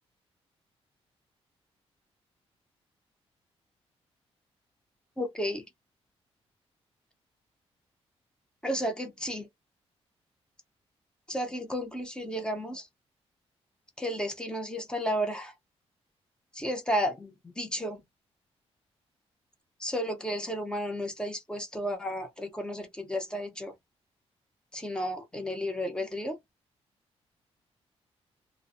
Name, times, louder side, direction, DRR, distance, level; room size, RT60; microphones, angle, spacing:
voice 1, 5.2-5.6 8.6-9.5 11.3-12.9 14.0-15.5 16.5-18.0 19.8-23.7 24.7-26.4, equal, 10° left, 0.6 m, -32 dB
2.4 x 2.0 x 2.5 m
cardioid pair, 135°, 11 cm